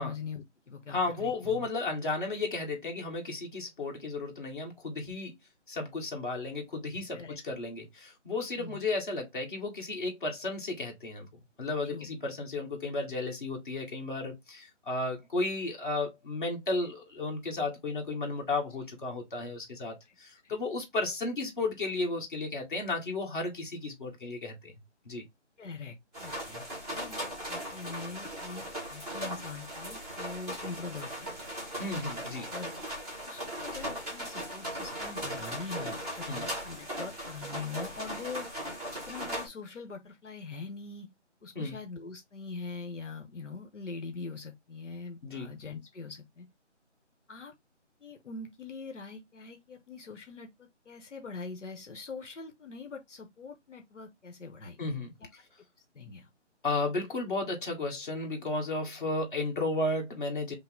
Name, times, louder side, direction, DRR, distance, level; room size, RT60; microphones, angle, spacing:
voice 1, 0.0-1.7 7.1-7.4 8.6-8.8 11.8-12.1 20.4-20.5 25.6-31.3 32.4-32.7 33.2-38.5 39.0-41.1 41.4-46.5 47.3-47.5 48.0-54.8 55.9-56.3, left 4 dB, 80° left, 1.0 m, -43 dB
voice 2, 0.9-5.3 5.7-11.3 11.6-24.7 25.1-25.2 31.8-32.5 36.3-36.5 41.6-41.8 45.2-45.5 54.8-55.2 56.6-60.5, left 2 dB, 45° left, 1.6 m, -33 dB
sound 1, 26.1-39.5, equal, 5° left, 0.7 m, -38 dB
5.6 x 2.1 x 3.6 m
figure-of-eight pair, 165°, 36 cm